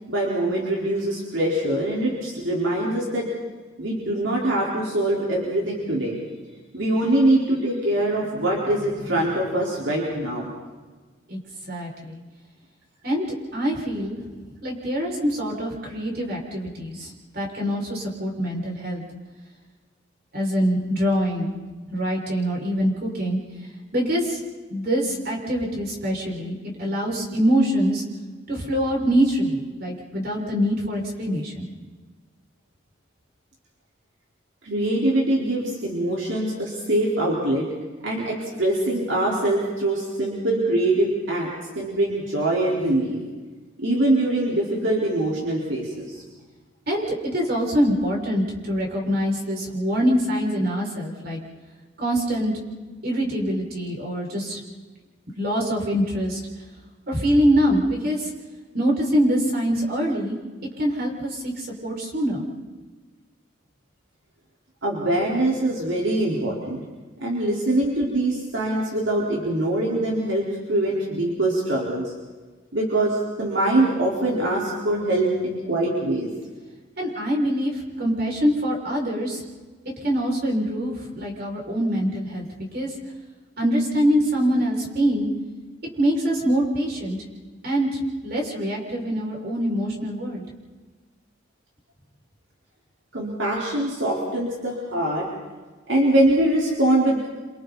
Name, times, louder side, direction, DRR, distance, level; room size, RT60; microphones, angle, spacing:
voice 1, 0.1-3.3 3.8-6.2 6.7-10.5 34.6-37.6 38.0-41.5 41.7-43.2 43.8-46.2 64.8-66.8 67.2-72.1 72.7-76.3 93.1-95.3 95.9-97.3, right 1 dB, 75° right, -4 dB, 4.4 m, -23 dB
voice 2, 11.7-12.2 13.0-13.2 13.5-14.2 14.6-19.0 20.3-21.5 21.9-23.4 23.9-24.4 24.7-28.0 28.5-31.7 46.9-51.4 52.0-52.5 53.0-54.6 55.4-56.4 57.1-58.3 58.7-60.4 60.8-62.4 77.0-79.4 80.0-82.5 82.7-82.9 83.6-85.3 86.0-87.2 87.6-90.4, equal, 50° right, -1 dB, 6.2 m, -24 dB
29.5 x 27.0 x 4.2 m, 1.3 s
head